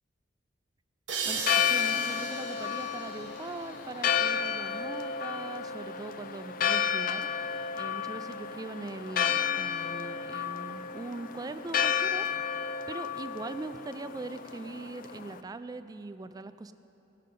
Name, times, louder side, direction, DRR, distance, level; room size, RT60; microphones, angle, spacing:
sound 1, 1.1-4.5, right 5 dB, 90° right, 1.2 m, -37 dB
voice 1, 1.2-7.3 7.7-12.3 12.9-16.7, right 3 dB, 20° right, 11 dB, 0.3 m, -41 dB
Church bell, 1.3-15.4, left 8 dB, 50° left, 0.4 m, -32 dB
16.0 x 6.6 x 5.2 m, 3.0 s
head